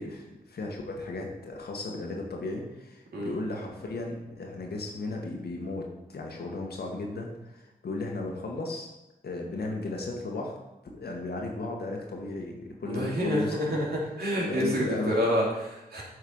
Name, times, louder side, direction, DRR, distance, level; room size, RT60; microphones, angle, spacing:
voice 1, 0.0-8.9 9.2-10.5 10.9-13.8 14.4-15.2, left 2 dB, 75° left, 1 dB, 1.7 m, -35 dB
voice 2, 12.8-16.0, equal, 70° right, -3 dB, 2.7 m, -28 dB
8.3 x 4.6 x 5.6 m, 0.96 s
cardioid pair, 45°, 17 cm